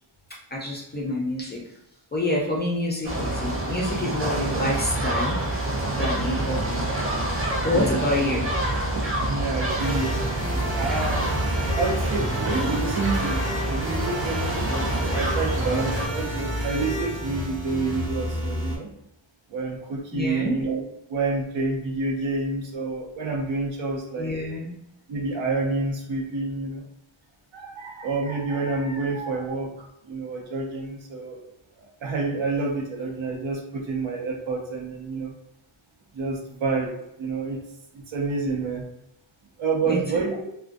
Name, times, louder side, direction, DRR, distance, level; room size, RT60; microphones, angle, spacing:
voice 1, 0.5-1.6 2.1-5.6 6.0-6.9 7.6-8.5 20.1-20.6 24.2-24.8 39.9-40.3, left 1 dB, 25° left, -3 dB, 0.3 m, -27 dB
sound 1, 3.0-16.1, right 1 dB, 30° right, 0.5 m, -27 dB
voice 2, 6.3-8.1 9.2-10.2 10.8-11.3 11.7-18.9 19.5-24.3 25.1-26.8 27.5-31.4 31.8-35.3 36.1-37.6 37.9-38.8 39.6-40.5, right 3 dB, 75° right, 0 dB, 0.7 m, -29 dB
sound 2, 9.8-18.8, equal, 5° right, 0.9 m, -30 dB
2.3 x 2.2 x 2.5 m, 0.85 s
wide cardioid pair, 165°, 47 cm